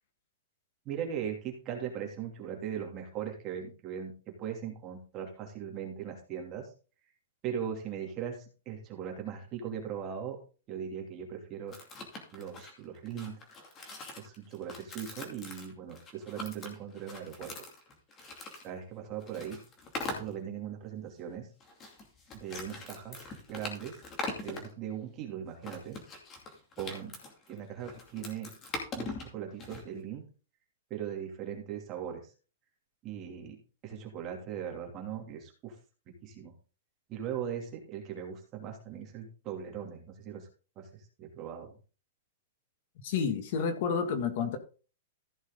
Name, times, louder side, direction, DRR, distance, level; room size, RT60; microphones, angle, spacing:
voice 1, 0.8-6.7 7.4-10.4 10.7-11.8 12.3-13.4 14.2-17.7 18.6-19.6 20.1-21.5 22.3-24.0 24.4-26.0 26.8-27.2 27.5-28.6 29.0-30.2 30.9-32.3 33.0-35.8 36.1-36.5 37.1-40.5 40.8-41.8, right 8 dB, 25° right, 2.7 m, -39 dB
sound 1, 11.7-18.7 19.2-20.3 21.6-24.7 25.6-29.8, left 3 dB, 20° left, 2.6 m, -42 dB
voice 2, 43.0-44.6, left 6 dB, 45° left, 1.7 m, -30 dB
14.5 x 6.3 x 3.9 m
supercardioid pair, 170°, 0 cm